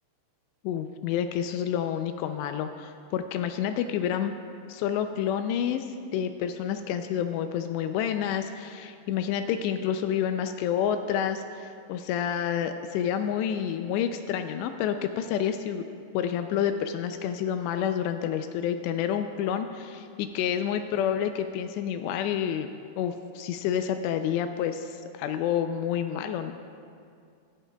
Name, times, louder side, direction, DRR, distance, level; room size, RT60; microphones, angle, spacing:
voice 1, 0.6-4.3 4.7-15.8 16.1-22.7 23.0-26.5, left 9 dB, 85° left, 8 dB, 2.5 m, -29 dB
17.0 x 15.5 x 2.3 m, 2.3 s
omnidirectional pair, 5.4 m